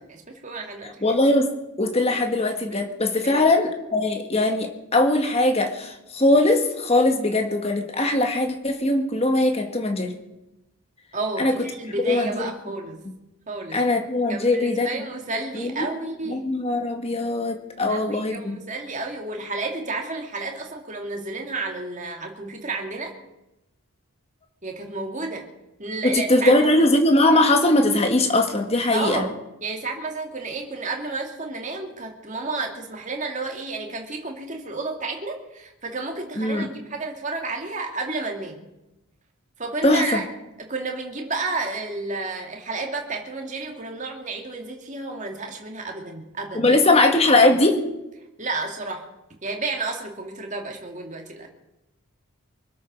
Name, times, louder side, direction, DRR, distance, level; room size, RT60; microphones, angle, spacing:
voice 1, 0.1-1.1 2.7-2.8 3.2-3.5 11.1-13.0 13.5-13.8 14.3-16.5 17.9-23.2 24.6-25.5 25.8-26.9 28.9-38.7 39.6-40.3 40.6-46.8 48.4-49.0 49.4-51.5, right 3 dB, 35° right, 2 dB, 2.4 m, -31 dB
voice 2, 1.0-1.5 1.8-10.1 11.4-11.6 12.1-12.5 13.7-14.9 15.5-15.9 16.3-18.6 26.0-29.3 36.4-36.7 39.8-40.2 46.6-47.8, left 2 dB, 25° left, 5 dB, 1.8 m, -20 dB
24.5 x 8.6 x 6.2 m, 0.94 s
head